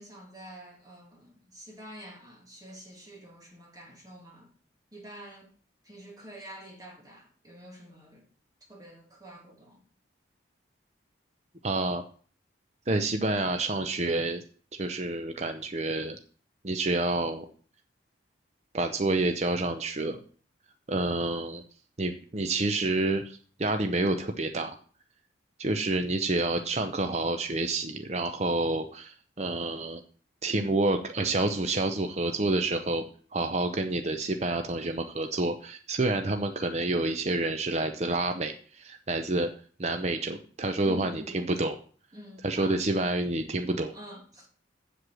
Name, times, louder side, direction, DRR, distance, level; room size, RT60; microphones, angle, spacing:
voice 1, 0.0-4.5 4.9-5.5 5.8-8.3 8.7-9.8 40.8-41.5 42.1-42.8 43.9-44.5, equal, 20° right, 2.4 m, -47 dB
voice 2, 11.6-12.0 12.9-14.4 14.8-16.2 16.6-17.5 18.7-20.2 20.9-21.6 22.0-24.8 25.6-30.0 30.4-33.0 33.3-39.5 39.8-41.8 42.4-43.9, right 2 dB, 35° right, 0.7 m, -28 dB
8.0 x 7.7 x 6.3 m
head